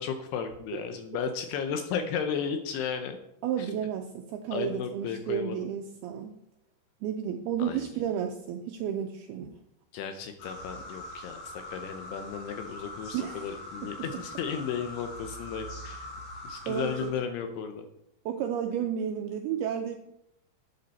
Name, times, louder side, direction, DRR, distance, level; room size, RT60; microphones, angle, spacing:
voice 1, 0.0-3.2 3.6-3.7 4.5-5.6 7.6-7.9 9.9-16.1 16.4-17.9, left 7 dB, 80° left, 7 dB, 2.5 m, -34 dB
voice 2, 3.4-6.4 7.0-9.6 13.1-13.5 13.8-13.9 16.7-17.1 18.3-20.0, right 9 dB, 80° right, 5 dB, 2.3 m, -32 dB
sound 1, 10.4-17.1, left 1 dB, 60° left, 3.9 m, -42 dB
11.5 x 8.6 x 4.1 m, 0.80 s
omnidirectional pair, 5.2 m